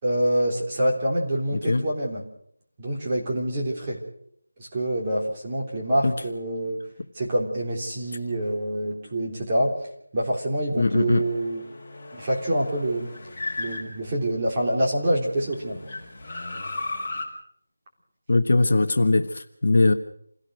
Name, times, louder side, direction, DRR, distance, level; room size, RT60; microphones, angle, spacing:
voice 1, 0.0-2.2 2.8-4.0 4.6-6.8 7.1-9.7 10.1-11.7 12.1-13.1 13.6-15.8, right 1 dB, 20° right, -3 dB, 3.6 m, -26 dB
voice 2, 1.5-1.9 6.0-6.1 10.8-11.2 18.3-19.9, left 2 dB, 45° left, 6 dB, 1.3 m, -20 dB
sound 1, 11.1-14.5 15.0-17.3, left 2 dB, 15° left, 4.8 m, -36 dB
27.5 x 17.0 x 6.5 m, 0.68 s
figure-of-eight pair, 175°, 0 cm